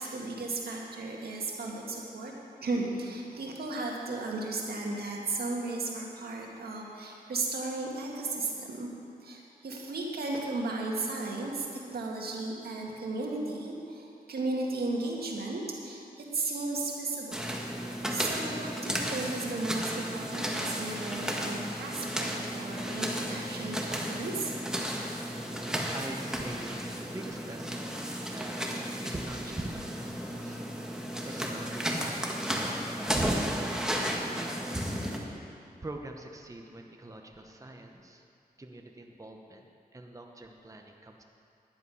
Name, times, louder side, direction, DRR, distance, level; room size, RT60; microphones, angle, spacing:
voice 1, 0.0-2.3 2.6-8.9 9.2-17.4 18.1-24.5, right 2 dB, 75° right, -1 dB, 1.9 m, -35 dB
sound 1, 17.3-35.2, equal, 5° right, 1.6 m, -34 dB
voice 2, 24.8-28.6 29.0-30.6 31.2-35.0 35.3-38.2 38.6-41.2, right 2 dB, 20° right, 2 dB, 1.0 m, -43 dB
11.0 x 10.5 x 5.6 m, 2.6 s
cardioid pair, 65°, 16 cm